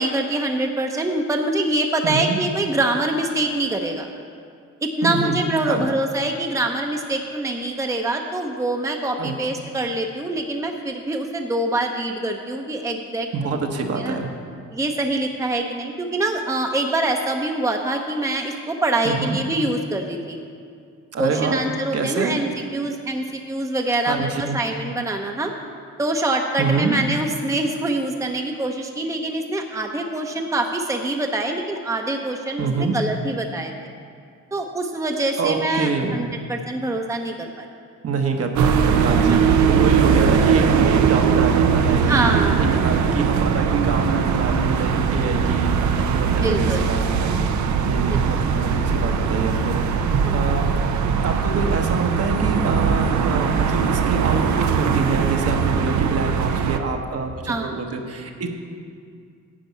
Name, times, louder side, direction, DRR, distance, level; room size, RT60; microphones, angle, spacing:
voice 1, 0.0-4.1 4.8-13.6 13.9-14.2 14.7-20.4 21.2-25.5 26.0-33.7 34.5-37.7 39.3-39.4 42.0-42.7 46.3-46.9 48.1-48.2 49.0-49.1 50.2-50.3 57.5-57.7, right 2 dB, 10° right, 3 dB, 0.7 m, -25 dB
voice 2, 2.0-2.4 5.0-5.4 5.7-5.9 9.2-9.3 13.3-14.4 19.0-19.4 21.1-21.6 21.9-22.4 24.0-24.6 26.6-27.0 32.6-33.0 35.4-36.2 38.0-42.3 42.6-45.7 46.1-47.5 47.9-50.8 51.2-58.5, right 4 dB, 50° right, 3 dB, 1.2 m, -26 dB
sound 1, 38.6-56.8, right 6 dB, 70° right, 0.7 m, -20 dB
10.0 x 5.3 x 8.3 m, 2.3 s
cardioid pair, 90°, 30 cm